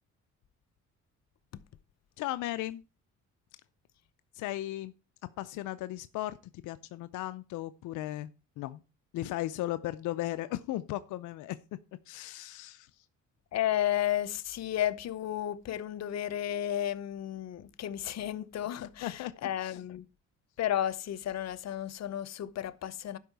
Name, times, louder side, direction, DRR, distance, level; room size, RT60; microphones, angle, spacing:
voice 1, 2.2-2.8 4.3-4.9 5.4-6.4 6.6-8.3 8.6-8.8 9.1-11.6 12.1-13.0 18.8-19.8, left 15 dB, 85° left, 0.5 m, -36 dB
voice 2, 13.5-20.1 20.6-23.2, left 11 dB, 60° left, 0.8 m, -33 dB
12.0 x 5.5 x 4.6 m
cardioid pair, 90°, 30 cm